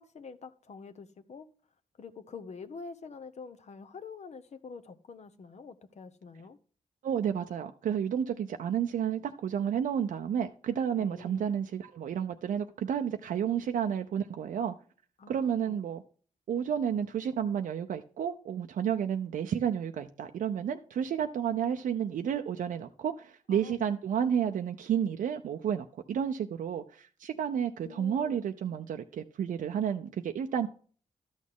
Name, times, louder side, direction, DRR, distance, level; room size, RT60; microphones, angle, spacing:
voice 1, 0.0-1.5 2.0-6.6 11.0-11.5 15.2-15.8 23.5-23.9 27.8-28.4, left 5 dB, 55° left, 0.9 m, -46 dB
voice 2, 7.0-14.7 15.3-16.0 16.5-30.7, right 8 dB, 85° right, 0.6 m, -31 dB
12.0 x 6.3 x 3.6 m
cardioid pair, 90°, 13 cm